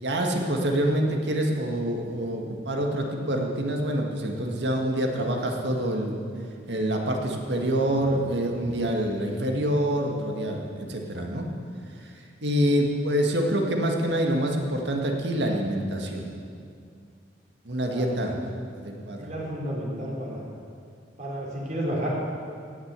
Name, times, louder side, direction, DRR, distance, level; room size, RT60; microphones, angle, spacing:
voice 1, 0.0-6.2 6.7-11.5 12.4-16.3 17.7-19.2, right 1 dB, 70° right, 2 dB, 1.8 m, -26 dB
voice 2, 17.9-18.4 19.2-20.5 21.2-22.1, equal, 45° right, -4 dB, 3.5 m, -32 dB
17.0 x 6.5 x 8.2 m, 2.3 s
head